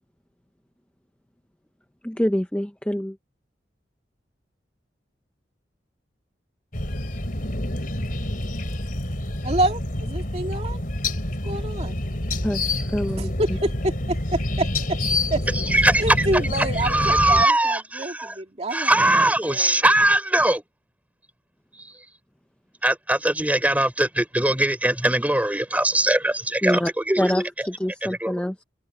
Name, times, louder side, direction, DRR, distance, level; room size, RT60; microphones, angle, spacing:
voice 1, 2.0-3.2 12.4-13.3 26.6-26.9 27.2-28.6, equal, 5° left, 0.7 m, -25 dB
sound 1, 6.7-17.4, left 1 dB, 55° left, 4.2 m, -27 dB
voice 2, 9.4-10.8 11.4-12.0 13.2-15.0 15.3-15.4 16.0-18.9 19.1-19.8, right 1 dB, 35° right, 2.5 m, -27 dB
voice 3, 15.5-18.4 18.7-20.6 21.8-22.0 22.8-27.3 27.6-27.7 28.0-28.4, right 1 dB, 10° right, 4.8 m, -21 dB
head